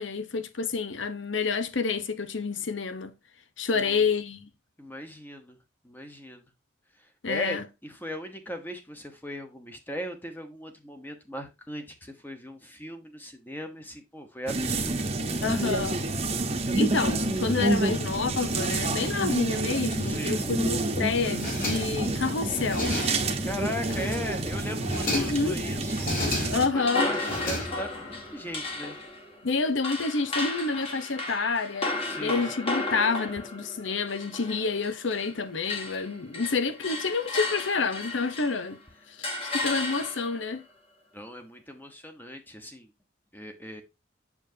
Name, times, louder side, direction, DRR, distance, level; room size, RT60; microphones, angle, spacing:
voice 1, 0.0-3.1 3.6-4.5 7.2-7.6 15.4-16.0 16.7-23.0 25.1-25.7 26.5-27.1 29.4-31.9 32.2-38.8 39.1-39.2 39.5-40.6, left 4 dB, 70° left, 0.8 m, -28 dB
voice 2, 3.7-4.0 4.8-5.6 5.8-6.4 7.0-15.0 20.0-20.4 23.4-26.0 26.7-28.9 32.0-32.5 41.1-42.9 43.3-43.8, equal, 10° left, 1.0 m, -38 dB
sound 1, 14.5-26.7, right 2 dB, 30° right, 1.0 m, -28 dB
sound 2, 21.2-22.1 22.5-23.4 23.7-24.4 24.7-25.5 25.9-26.8 27.1-28.1, left 1 dB, 45° left, 3.5 m, -33 dB
sound 3, 26.7-35.4 35.6-38.7 39.2-40.4, left 2 dB, 30° left, 1.6 m, -34 dB
7.2 x 6.8 x 2.7 m
head